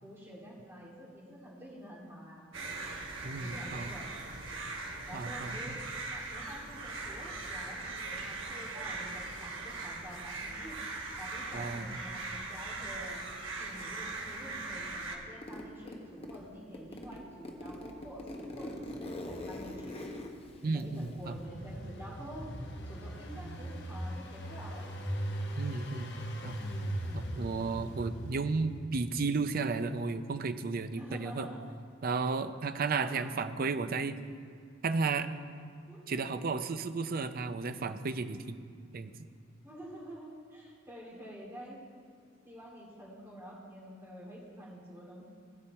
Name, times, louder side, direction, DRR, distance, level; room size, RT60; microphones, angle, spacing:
voice 1, 0.0-2.5 3.4-4.1 5.1-5.8 6.1-10.8 11.2-13.2 13.6-20.0 20.6-22.5 22.8-24.9 31.0-31.6 33.0-33.5 35.9-36.0 39.6-41.8 42.4-45.4, equal, 15° right, -6 dB, 2.6 m, -48 dB
sound 1, 2.5-15.2, right 3 dB, 75° right, 1.2 m, -40 dB
voice 2, 3.2-3.9 5.1-5.8 11.5-12.0 20.6-21.3 25.6-26.2 26.4-26.5 27.1-31.5 32.0-34.2 34.8-35.3 36.1-38.6 38.9-39.1, right 4 dB, 50° right, 10 dB, 0.5 m, -33 dB
Zipper (clothing), 15.4-16.4 16.7-21.4, left 1 dB, 30° left, 1.0 m, -42 dB
Engine, 20.9-28.9, equal, 60° left, 1.2 m, -39 dB
16.5 x 5.6 x 4.3 m, 2.4 s
head